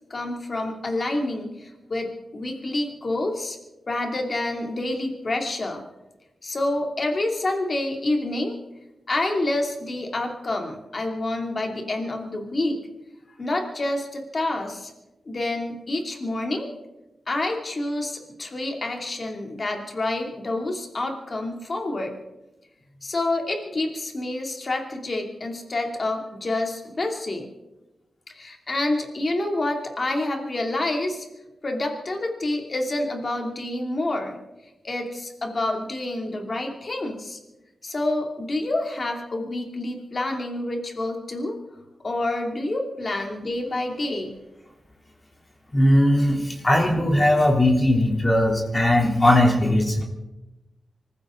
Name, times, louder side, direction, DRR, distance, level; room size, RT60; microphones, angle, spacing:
voice 1, 0.1-3.6 3.9-5.8 6.4-8.6 9.1-12.8 13.3-14.9 15.3-16.7 17.3-22.2 23.0-27.5 28.3-31.3 31.6-34.4 34.8-37.4 37.8-41.6 42.0-44.3, left 2 dB, 45° left, 3 dB, 2.8 m, -28 dB
voice 2, 45.7-50.0, left 1 dB, 20° left, 1 dB, 3.2 m, -19 dB
25.0 x 15.0 x 3.9 m, 1.0 s
cardioid pair, 80°, 0 cm